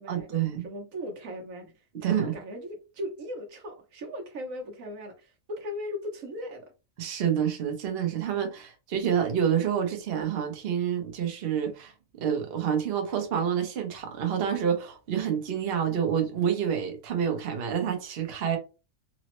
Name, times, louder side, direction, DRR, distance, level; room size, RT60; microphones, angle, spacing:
voice 1, 0.1-0.6 2.0-2.3 7.0-11.9 12.2-18.6, right 8 dB, 50° right, 0.9 m, -28 dB
voice 2, 0.6-6.7, left 1 dB, 75° right, 1.2 m, -38 dB
4.0 x 2.0 x 2.9 m
omnidirectional pair, 1.4 m